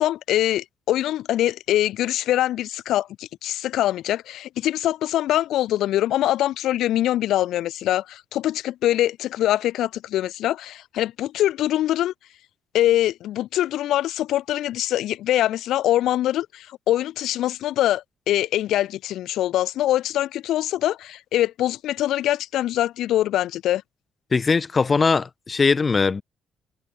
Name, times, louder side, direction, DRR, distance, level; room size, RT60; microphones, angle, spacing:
voice 1, 0.0-12.1 12.7-23.8, left 13 dB, 75° left, 1.4 m, -23 dB
voice 2, 24.3-26.2, left 4 dB, 30° left, 0.6 m, -20 dB
cardioid pair, 120°, 0 cm